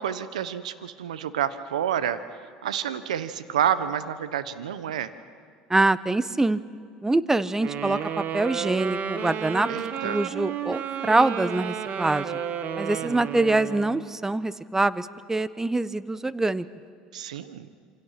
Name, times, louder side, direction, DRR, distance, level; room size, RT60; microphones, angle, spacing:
voice 1, 0.0-2.2 2.6-5.1 9.7-10.2 13.0-13.1 17.1-17.7, right 9 dB, 85° right, 13 dB, 1.0 m, -29 dB
voice 2, 5.7-6.6 7.0-8.0 8.3-9.7 10.0-12.4 12.8-16.7, right 2 dB, 10° right, 16 dB, 1.0 m, -24 dB
Wind instrument woodwind instrument, 7.6-14.1, right 8 dB, 50° right, 1.9 m, -32 dB
27.5 x 25.0 x 5.9 m, 2.1 s
hypercardioid pair, 75°, 4 cm